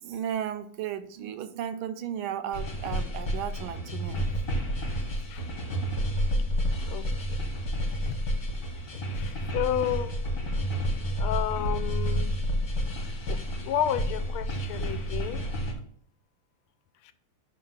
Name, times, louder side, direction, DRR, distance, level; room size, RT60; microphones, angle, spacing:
voice 1, 0.0-4.2, right 9 dB, 80° right, 1.4 m, -34 dB
sound 1, 2.5-15.7, equal, 50° left, 1.5 m, -30 dB
voice 2, 5.0-5.5 6.9-7.4 7.9-8.2 9.1-10.2 11.2-12.3 13.0-15.5 17.0-17.1, left 10 dB, 85° left, 1.4 m, -32 dB
5.8 x 3.8 x 5.7 m
omnidirectional pair, 2.3 m